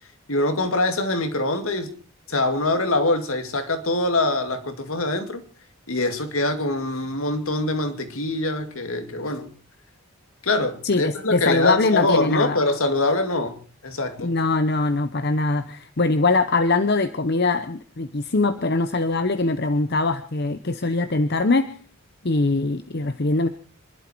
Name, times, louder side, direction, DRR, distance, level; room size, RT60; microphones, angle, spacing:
voice 1, 0.3-1.9 2.3-5.4 5.9-9.5 10.4-13.6 13.8-14.3, left 2 dB, 70° left, 2.4 m, -24 dB
voice 2, 10.8-12.6 14.2-21.7 22.2-23.5, left 3 dB, 45° left, 0.8 m, -22 dB
26.0 x 12.0 x 4.6 m
head